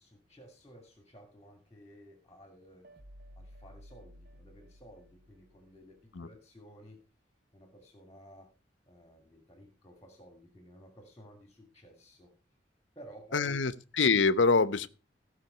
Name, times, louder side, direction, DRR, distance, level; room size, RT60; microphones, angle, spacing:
voice 1, 0.0-2.9 3.4-7.0 7.5-8.5 8.9-12.3 12.9-13.6, equal, 20° left, 2.4 m, -54 dB
sound 1, 2.8-6.0, equal, 55° right, 1.1 m, -54 dB
voice 2, 13.3-14.9, left 4 dB, 85° left, 0.9 m, -25 dB
16.5 x 5.8 x 5.6 m
head